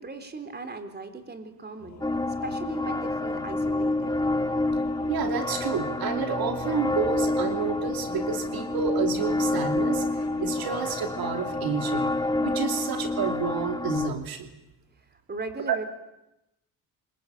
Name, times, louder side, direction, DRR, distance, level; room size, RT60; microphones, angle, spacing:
voice 1, 0.0-2.0 2.4-4.2 15.1-15.9, right 3 dB, 30° right, 8 dB, 3.8 m, -38 dB
Singing / Musical instrument, 1.8-14.3, left 6 dB, 50° left, 5.9 m, -45 dB
sound 1, 2.0-14.1, left 2 dB, 10° left, 1.4 m, -28 dB
voice 2, 5.1-12.1 12.4-14.5 15.7-15.8, right 7 dB, 80° right, 5 dB, 2.9 m, -30 dB
27.0 x 22.0 x 9.0 m, 0.91 s
cardioid pair, 105°, 36 cm